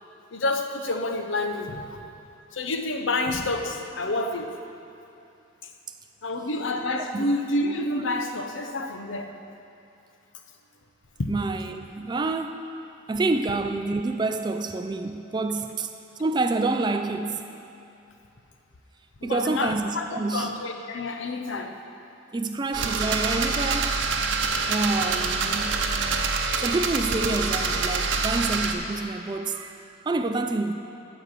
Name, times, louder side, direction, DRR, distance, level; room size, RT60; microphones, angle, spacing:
voice 1, 0.3-2.0 2.5-4.5 6.2-9.3 11.2-11.3 19.2-20.0 20.3-21.7, left 2 dB, 75° left, 0.8 m, -28 dB
voice 2, 11.3-12.6 13.1-15.9 16.2-17.5 19.2-20.5 22.3-25.8 26.6-30.7, right 3 dB, 20° right, 0.3 m, -28 dB
sound 1, 22.7-28.7, right 4 dB, 70° right, 0.8 m, -26 dB
13.0 x 4.6 x 7.4 m
head